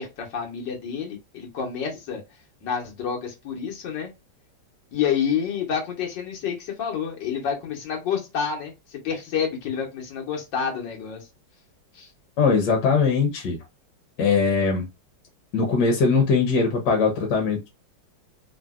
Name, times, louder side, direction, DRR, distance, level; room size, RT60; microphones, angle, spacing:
voice 1, 0.0-2.2 2.6-4.1 4.9-11.3 11.9-12.1, left 7 dB, 90° left, 1.7 m, -29 dB
voice 2, 12.4-13.6 14.2-14.9 15.5-17.7, left 5 dB, 70° left, 1.3 m, -21 dB
3.7 x 2.1 x 2.3 m
omnidirectional pair, 1.9 m